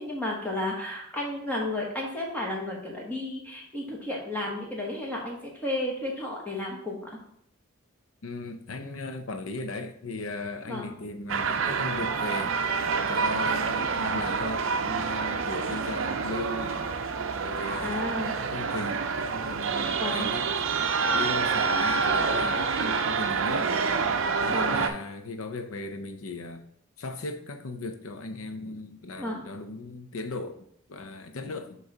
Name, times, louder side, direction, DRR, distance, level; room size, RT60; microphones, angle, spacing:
voice 1, 0.0-7.1 10.7-10.9 17.8-18.4 20.0-20.3 24.5-24.8 29.2-29.4, left 1 dB, 10° left, 1.2 m, -32 dB
voice 2, 8.2-12.6 13.1-16.9 17.4-18.1 18.4-20.5 21.1-23.7 24.4-26.6 27.0-31.8, left 2 dB, 75° left, 0.6 m, -37 dB
sound 1, 11.3-24.9, right 5 dB, 65° right, 0.5 m, -27 dB
6.4 x 3.1 x 5.8 m
head